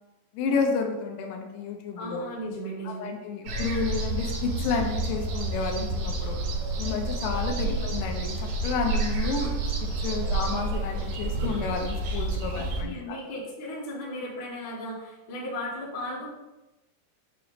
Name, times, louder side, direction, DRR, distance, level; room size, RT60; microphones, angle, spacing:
voice 1, 0.3-2.3 2.9-6.4 6.8-9.6 10.0-13.2, left 5 dB, 80° left, 3 dB, 3.0 m, -31 dB
voice 2, 1.9-3.1 7.6-7.9 12.5-16.3, equal, 65° left, -6 dB, 0.9 m, -36 dB
sound 1, 3.5-12.8, right 2 dB, 80° right, 4.1 m, -29 dB
8.9 x 3.0 x 5.1 m, 1.0 s
omnidirectional pair, 5.4 m